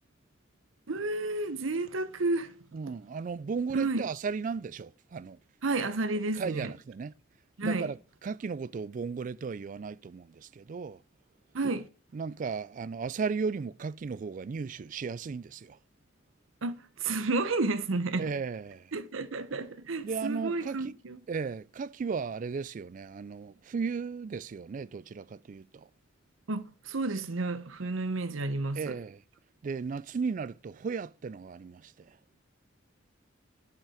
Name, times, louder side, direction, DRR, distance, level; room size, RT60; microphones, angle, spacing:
voice 1, 0.9-2.5 3.7-4.0 5.6-6.7 7.6-7.9 11.5-11.9 16.6-18.3 18.9-21.2 26.5-29.0, right 3 dB, 85° right, 0.8 m, -31 dB
voice 2, 2.7-5.4 6.3-7.1 7.6-8.0 8.2-11.0 12.1-15.8 18.2-18.9 20.0-20.9 21.3-25.9 28.7-29.2 29.6-32.2, right 5 dB, 40° right, 0.3 m, -35 dB
10.5 x 5.8 x 4.9 m
head